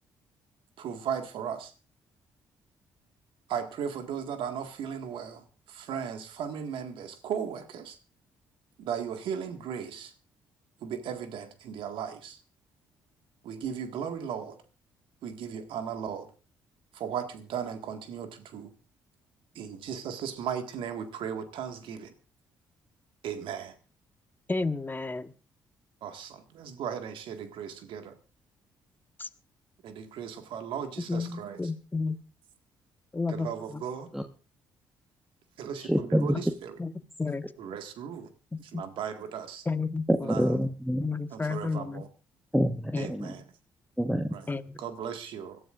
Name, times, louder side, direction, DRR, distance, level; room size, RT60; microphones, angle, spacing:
voice 1, 0.8-1.7 3.5-8.0 8.8-10.1 10.8-12.4 13.4-14.6 15.2-16.3 16.9-18.7 19.6-22.1 23.2-23.7 26.0-28.2 29.8-31.6 33.3-34.1 35.6-36.8 37.6-38.3 38.7-39.7 40.2-40.5 41.3-42.1 43.0-43.4 44.3-44.5 44.8-45.6, right 8 dB, 65° right, 7 dB, 1.8 m, -36 dB
voice 2, 24.5-25.3 29.2-29.3 31.1-32.2 33.1-33.8 36.3-36.4 36.8-36.9 37.2-37.4 38.5-38.8 39.6-40.3 41.0-42.0 42.9-43.4 44.5-44.7, left 3 dB, 20° left, 10 dB, 1.3 m, -32 dB
voice 3, 35.8-36.4 40.1-41.0 42.5-43.3 44.0-44.3, equal, ahead, 6 dB, 1.2 m, -26 dB
25.5 x 12.5 x 2.5 m, 0.35 s
hypercardioid pair, 45°, 9 cm